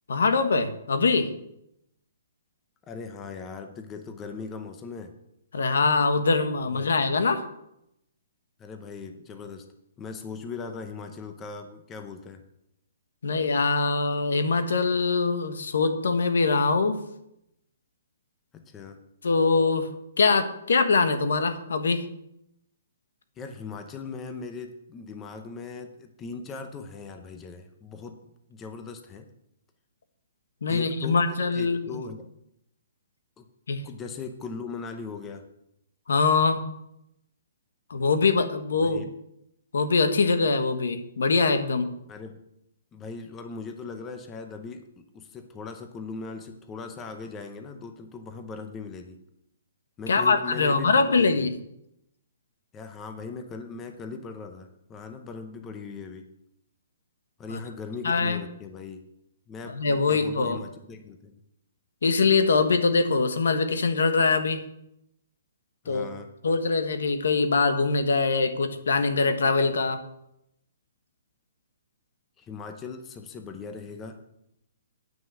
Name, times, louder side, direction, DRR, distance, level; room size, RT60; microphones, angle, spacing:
voice 1, 0.1-1.3 5.5-7.5 13.2-17.0 19.2-22.0 30.6-32.0 33.7-33.8 36.1-36.6 37.9-39.0 39.7-41.9 50.1-51.5 57.5-57.6 58.0-58.4 59.7-60.6 62.0-64.6 65.9-66.1 66.4-70.0, left 4 dB, 85° left, 9 dB, 1.3 m, -23 dB
voice 2, 2.9-5.1 6.6-6.9 8.6-9.7 10.0-12.4 18.5-19.0 23.4-28.2 28.5-29.3 30.7-32.3 33.4-33.5 33.8-35.4 38.8-39.1 42.1-42.4 42.9-49.2 50.0-51.5 52.7-56.3 57.4-59.0 59.5-61.4 65.8-66.3 72.4-74.2, left 4 dB, 10° left, 6 dB, 0.7 m, -39 dB
9.3 x 6.2 x 7.5 m, 0.80 s
hypercardioid pair, 175°, 0 cm